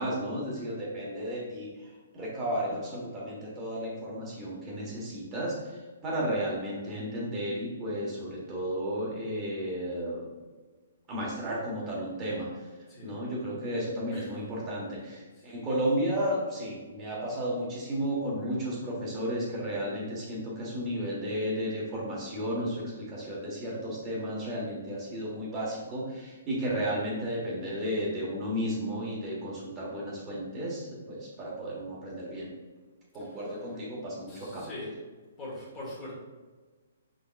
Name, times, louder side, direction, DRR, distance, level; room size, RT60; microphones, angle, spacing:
voice 1, 0.0-10.3 11.1-12.5 13.0-32.5 33.1-34.7, equal, 25° right, -5 dB, 1.3 m, -33 dB
voice 2, 12.9-13.2 14.1-14.4 15.4-15.5 33.2-33.5 34.3-34.9 35.4-36.2, left 1 dB, 25° left, -6 dB, 1.5 m, -42 dB
4.7 x 3.9 x 2.4 m, 1.3 s
hypercardioid pair, 140°, 0 cm